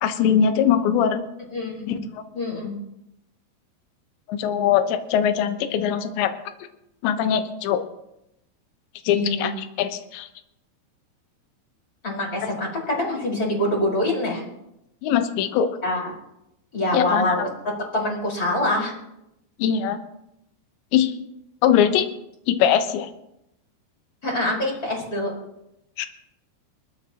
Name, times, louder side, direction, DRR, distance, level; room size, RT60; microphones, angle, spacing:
voice 1, 0.0-1.2 1.9-2.2 4.3-6.3 7.0-7.8 9.0-10.3 15.0-15.7 16.9-17.4 19.6-20.0 20.9-21.1 21.6-22.1 22.5-23.1 26.0-26.1, left 9 dB, 70° left, 7 dB, 3.2 m, -21 dB
voice 2, 1.5-2.0 2.3-2.7 9.1-9.5 12.0-14.4 15.8-16.1 16.7-17.5 17.9-18.9 24.2-25.3, left 1 dB, 20° left, -2 dB, 5.1 m, -25 dB
26.0 x 13.0 x 3.0 m, 0.84 s
omnidirectional pair, 5.7 m